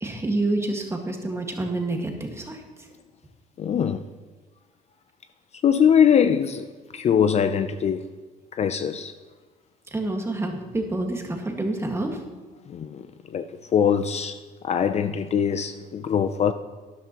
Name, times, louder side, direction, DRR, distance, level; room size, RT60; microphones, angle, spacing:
voice 1, 0.0-2.6 9.9-12.2, right 2 dB, 15° right, 1.7 m, -28 dB
voice 2, 3.6-4.0 5.6-6.7 6.9-8.0 8.5-9.1 12.7-13.0 13.3-13.5 13.7-14.4 14.6-16.5, left 8 dB, 40° left, 0.5 m, -22 dB
13.0 x 11.0 x 2.9 m
cardioid pair, 110°, 17 cm